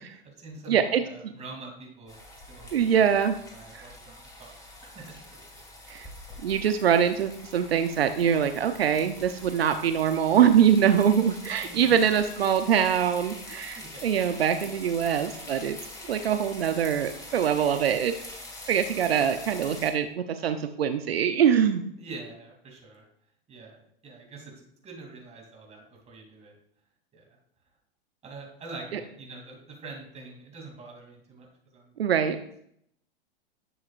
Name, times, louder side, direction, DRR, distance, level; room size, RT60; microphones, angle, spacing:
voice 1, 0.0-2.2 2.5-2.7 3.2-4.5 4.8-5.6 11.6-12.1 13.7-14.1 22.0-23.1 23.5-26.6 27.1-27.3 28.2-31.9, right 3 dB, 20° right, 0 dB, 2.8 m, -45 dB
voice 2, 0.7-1.3 2.7-3.3 3.7-3.9 5.9-6.1 6.4-15.8 16.1-18.1 18.7-21.8 28.9-29.0 32.0-32.4, right 8 dB, 80° right, 9 dB, 0.7 m, -23 dB
sound 1, 2.1-19.9, left 2 dB, 10° left, 2.2 m, -44 dB
11.0 x 7.1 x 2.5 m, 0.71 s
hypercardioid pair, 110°, 30 cm